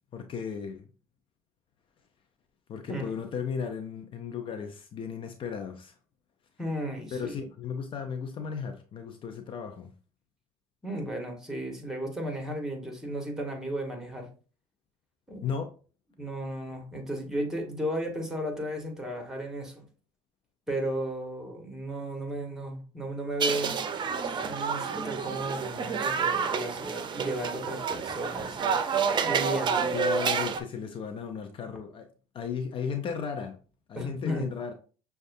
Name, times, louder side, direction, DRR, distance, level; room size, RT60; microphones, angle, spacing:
voice 1, 0.1-0.9 2.7-6.0 7.1-9.9 15.4-15.7 29.9-32.1 32.3-33.6 33.9-34.7, left 6 dB, 45° left, 0.6 m, -35 dB
voice 2, 6.6-7.4 10.8-14.3 15.3-15.5 16.2-19.9 20.7-23.8 24.5-29.9 33.9-34.5, right 1 dB, 5° right, 1.5 m, -34 dB
sound 1, 23.4-30.6, right 6 dB, 40° right, 0.6 m, -29 dB
6.2 x 2.3 x 2.6 m
supercardioid pair, 75°, 12 cm